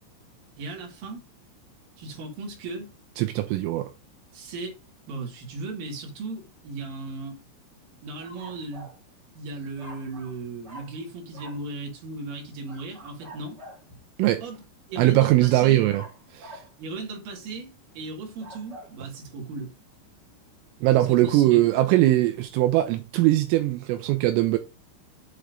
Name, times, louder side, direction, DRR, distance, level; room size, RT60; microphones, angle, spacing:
voice 1, 0.6-1.2 2.0-2.9 4.3-4.8 5.1-7.4 8.0-8.9 9.3-13.6 14.4-14.6 14.9-15.9 16.8-19.7 21.0-21.6, right 3 dB, 50° right, 3.4 m, -36 dB
voice 2, 3.2-3.9 14.2-14.4 15.0-16.0 16.3-16.6 20.8-24.6, right 16 dB, 85° right, 3.1 m, -21 dB
sound 1, 8.2-9.0 9.8-10.4 10.6-11.0 11.3-11.6 12.7-13.9 15.9-16.7 18.2-18.9, right 1 dB, 35° right, 1.8 m, -45 dB
7.9 x 3.6 x 5.0 m
omnidirectional pair, 5.9 m